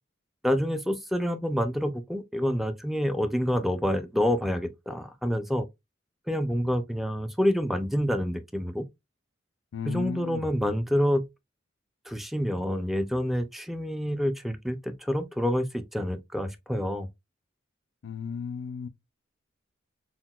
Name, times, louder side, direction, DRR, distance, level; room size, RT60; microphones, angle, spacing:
voice 1, 0.4-5.7 6.3-8.9 9.9-11.2 12.1-17.1, equal, ahead, 0.4 m, -27 dB
voice 2, 9.7-10.5 18.0-18.9, left 6 dB, 90° left, 0.4 m, -34 dB
5.7 x 2.1 x 2.2 m
head